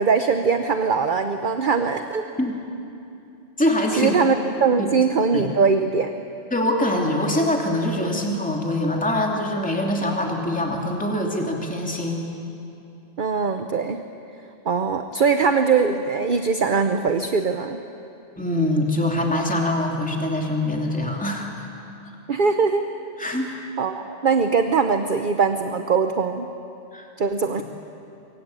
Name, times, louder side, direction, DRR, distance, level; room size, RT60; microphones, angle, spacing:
voice 1, 0.0-2.3 4.0-6.1 13.2-14.0 14.7-17.8 22.3-22.9 23.4-26.5 27.2-27.6, right 5 dB, 45° right, 7 dB, 1.0 m, -21 dB
voice 2, 3.6-4.2 4.8-4.9 5.3-5.4 6.5-12.2 18.4-21.7 23.2-23.5 26.9-27.1, left 1 dB, 5° left, 0 dB, 2.7 m, -24 dB
25.0 x 23.0 x 9.0 m, 2.8 s
omnidirectional pair, 1.2 m